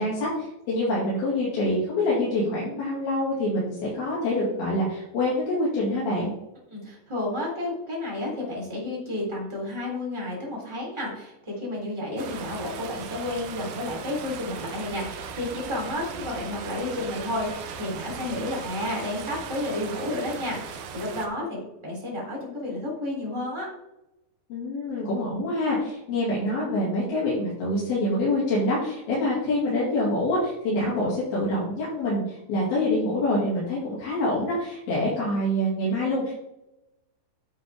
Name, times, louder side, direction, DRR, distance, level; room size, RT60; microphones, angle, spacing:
voice 1, 0.0-6.3 24.5-36.3, left 1 dB, 60° left, -8 dB, 4.1 m, -26 dB
voice 2, 6.7-23.7, left 1 dB, 5° right, -4 dB, 2.8 m, -31 dB
sound 1, 12.2-21.3, right 6 dB, 90° right, 1.8 m, -38 dB
9.8 x 6.7 x 3.6 m, 0.90 s
omnidirectional pair, 5.0 m